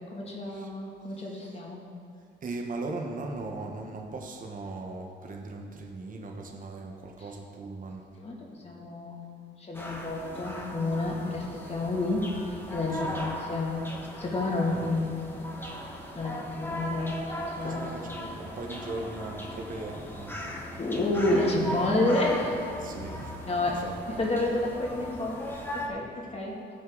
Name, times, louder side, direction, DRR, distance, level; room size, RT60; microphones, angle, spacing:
voice 1, 0.1-1.8 8.2-9.2 9.6-12.3 12.7-13.8 14.2-15.4 16.1-17.1 17.4-17.8 20.8-22.6 23.5-26.6, left 2 dB, 30° left, -2 dB, 2.4 m, -30 dB
voice 2, 2.4-8.0 12.9-13.2 14.6-14.8 17.6-20.6 22.8-23.3 23.7-23.9, right 2 dB, 45° right, 2 dB, 1.2 m, -38 dB
sound 1, 9.7-25.9, left 1 dB, 10° left, 1.6 m, -38 dB
16.0 x 6.4 x 3.9 m, 2.5 s
cardioid pair, 90°, 20 cm